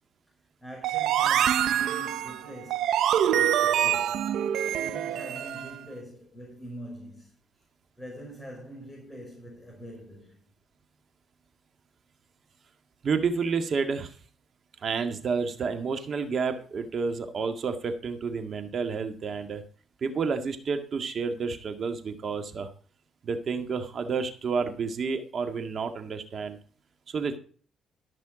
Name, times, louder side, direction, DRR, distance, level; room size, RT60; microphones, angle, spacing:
voice 1, 0.6-4.3 4.8-7.3 8.0-10.4, right 1 dB, 5° left, 5.0 m, -44 dB
sound 1, 0.8-5.7, right 10 dB, 75° right, 0.6 m, -25 dB
voice 2, 13.0-14.1 14.8-19.6 20.0-22.7 23.2-26.6 27.1-27.4, right 5 dB, 50° right, 1.9 m, -30 dB
14.0 x 6.1 x 5.0 m
cardioid pair, 90°, 0 cm